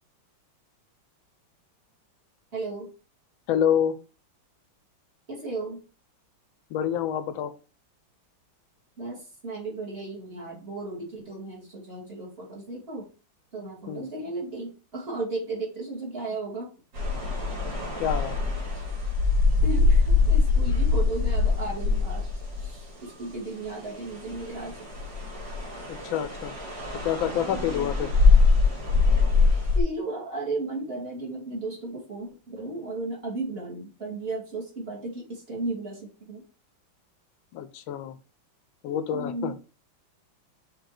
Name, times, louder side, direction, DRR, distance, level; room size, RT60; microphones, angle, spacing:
voice 1, 2.5-2.9 5.3-5.8 9.0-13.0 13.5-16.7 19.6-22.3 22.6-24.9 27.5-27.9 29.7-36.4 39.1-39.5, right 2 dB, 30° right, -3 dB, 2.4 m, -35 dB
voice 2, 3.5-3.9 6.7-7.5 13.9-14.1 18.0-18.4 25.9-26.5 27.0-28.1 37.5-38.2 38.8-39.5, left 9 dB, 90° left, 12 dB, 1.4 m, -27 dB
sound 1, 16.9-23.1 23.6-29.8, left 4 dB, 65° right, 3.3 m, -23 dB
6.6 x 3.9 x 4.9 m, 0.35 s
omnidirectional pair, 2.1 m